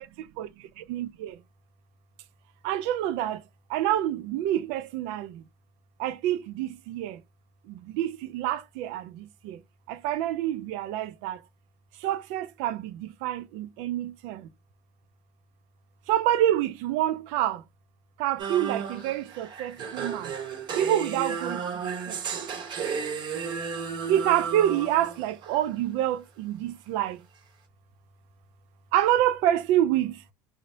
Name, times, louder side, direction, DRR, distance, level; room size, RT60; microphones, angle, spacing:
voice 1, 0.4-1.4 2.6-3.4 3.7-5.4 6.0-7.2 7.6-9.6 9.9-11.4 12.0-14.5 16.1-17.6 18.2-20.3 20.7-21.6 22.1-22.2 24.1-27.2 28.9-30.2, right 12 dB, 70° right, 0.5 m, -27 dB
sound 1, 18.4-25.6, right 6 dB, 45° right, 0.8 m, -33 dB
4.0 x 2.0 x 2.6 m
supercardioid pair, 110°, 11 cm